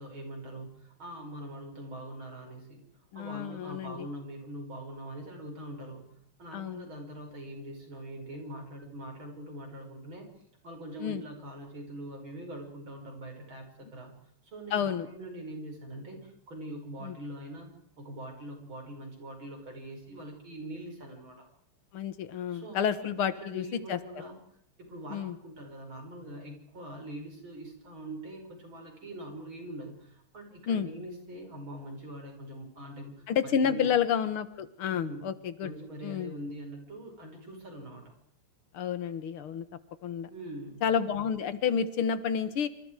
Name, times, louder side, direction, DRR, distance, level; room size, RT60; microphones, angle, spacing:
voice 1, 0.0-2.8 3.1-6.0 6.4-10.3 10.6-14.1 14.4-17.7 18.0-21.5 22.5-24.4 24.8-34.0 34.9-35.3 35.6-38.1 40.3-40.8, right 1 dB, 65° right, 3 dB, 6.4 m, -43 dB
voice 2, 3.1-4.1 6.5-6.9 11.0-11.2 14.7-15.1 17.0-17.2 21.9-24.0 25.1-25.4 30.7-30.9 33.3-35.7 36.0-36.3 38.7-39.7 40.0-40.3 40.8-42.7, left 7 dB, 75° left, 12 dB, 2.2 m, -30 dB
27.5 x 26.5 x 4.8 m, 0.68 s
omnidirectional pair, 2.4 m